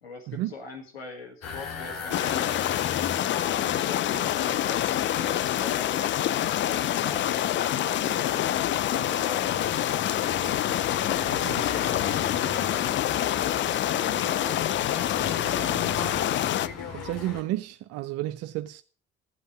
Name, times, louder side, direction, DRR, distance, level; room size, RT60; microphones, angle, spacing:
voice 1, 0.0-3.1 3.5-10.5 11.1-16.0, left 3 dB, 80° left, 1.6 m, -43 dB
sound 1, 1.4-17.4, left 5 dB, 55° left, 2.3 m, -38 dB
sound 2, 2.1-16.7, left 12 dB, 40° left, 0.5 m, -26 dB
voice 2, 16.9-18.8, right 15 dB, 55° right, 0.5 m, -32 dB
12.0 x 8.0 x 6.0 m
figure-of-eight pair, 45°, 30 cm